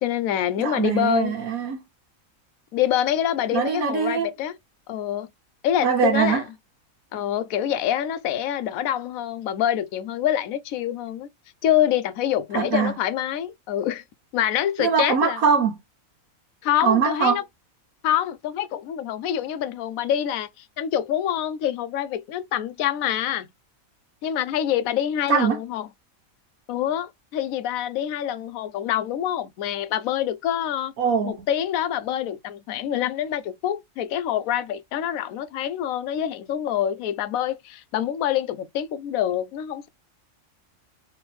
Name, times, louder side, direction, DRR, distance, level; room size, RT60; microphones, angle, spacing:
voice 1, 0.0-1.3 2.7-4.5 4.9-5.3 5.6-6.4 7.1-11.3 11.6-14.0 14.3-15.4 16.6-17.4 18.0-23.5 24.2-25.9 26.7-30.9 31.2-39.9, left 11 dB, 80° left, 1.0 m, -26 dB
voice 2, 0.6-1.8 3.5-4.3 5.8-6.4 12.5-12.9 14.8-15.7 16.8-17.4 25.3-25.6 31.0-31.3, right 6 dB, 85° right, 1.5 m, -22 dB
3.3 x 3.2 x 3.1 m
omnidirectional pair, 1.5 m